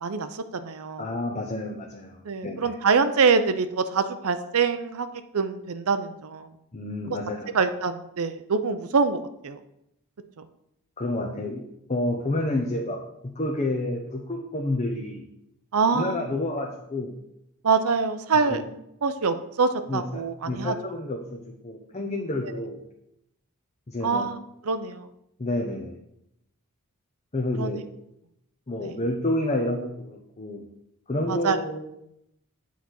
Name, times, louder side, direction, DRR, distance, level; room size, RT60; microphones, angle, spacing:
voice 1, 0.0-1.1 2.2-5.1 5.3-6.5 7.5-9.2 9.4-9.6 10.4-10.5 15.7-16.3 17.6-18.6 19.0-20.7 22.4-22.5 24.0-24.4 24.6-25.1 27.5-27.7 28.8-28.9 31.3-31.6, right 5 dB, 70° right, 10 dB, 0.6 m, -25 dB
voice 2, 1.0-2.7 6.7-7.5 11.0-11.6 11.9-15.3 15.9-17.1 18.5-18.7 19.9-22.8 23.9-24.3 25.4-26.0 27.3-27.9 28.7-30.7 31.1-31.8, left 1 dB, 30° left, 0 dB, 0.8 m, -29 dB
8.3 x 4.1 x 6.3 m, 0.80 s
head